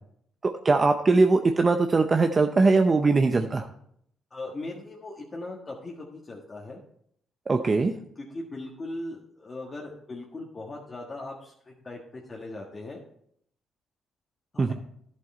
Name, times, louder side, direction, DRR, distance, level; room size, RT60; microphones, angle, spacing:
voice 1, 0.4-3.7 7.5-7.9 14.6-14.7, right 3 dB, 30° right, 6 dB, 0.7 m, -21 dB
voice 2, 4.3-6.8 8.1-13.0 14.5-14.7, left 2 dB, 35° left, -2 dB, 1.6 m, -39 dB
11.0 x 7.7 x 4.3 m, 0.69 s
cardioid pair, 90°, 0 cm